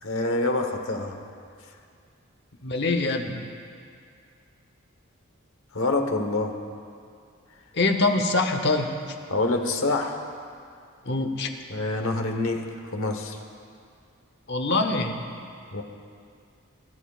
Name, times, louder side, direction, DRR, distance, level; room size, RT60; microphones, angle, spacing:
voice 1, 0.0-1.2 5.7-6.5 9.3-10.2 11.7-13.4 15.7-15.8, left 2 dB, 75° left, 5 dB, 1.1 m, -26 dB
voice 2, 2.6-3.4 7.7-9.0 11.1-11.5 14.5-15.1, left 2 dB, 55° left, 5 dB, 1.0 m, -24 dB
22.0 x 12.5 x 2.4 m, 2.3 s
head